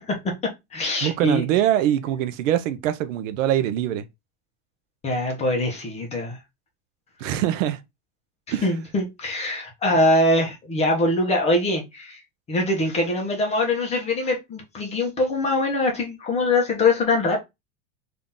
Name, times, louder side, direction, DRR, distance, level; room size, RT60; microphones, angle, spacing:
voice 1, 0.0-1.5 5.0-6.4 8.6-12.2 12.5-17.4, left 2 dB, 15° left, 1.0 m, -23 dB
voice 2, 1.0-4.1 7.2-7.8 8.5-8.7, right 11 dB, 80° right, 0.8 m, -23 dB
3.7 x 2.8 x 3.7 m
supercardioid pair, 170°, 37 cm